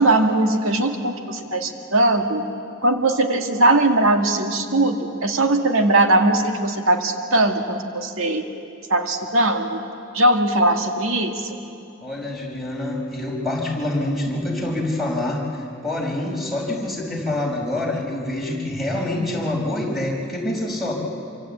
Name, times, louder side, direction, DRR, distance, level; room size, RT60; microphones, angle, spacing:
voice 1, 0.0-2.4 2.8-8.4 8.9-9.8 10.1-11.5, right 2 dB, 75° right, 4 dB, 2.0 m, -20 dB
voice 2, 12.0-20.9, left 1 dB, ahead, -2 dB, 4.9 m, -26 dB
26.0 x 25.5 x 8.6 m, 2.6 s
head